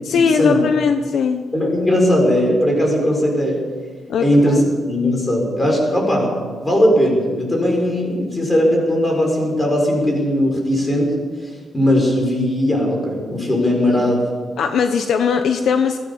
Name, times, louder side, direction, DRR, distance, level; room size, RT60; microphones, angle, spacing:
voice 1, 0.0-1.4 4.1-4.6 14.6-16.0, left 6 dB, 60° left, 7 dB, 1.1 m, -19 dB
voice 2, 1.5-3.6 4.2-4.6 4.9-6.3 6.6-11.1 11.4-14.3, left 1 dB, 15° left, 0 dB, 6.7 m, -18 dB
22.0 x 17.0 x 7.6 m, 1.5 s
wide cardioid pair, 160°, 0 cm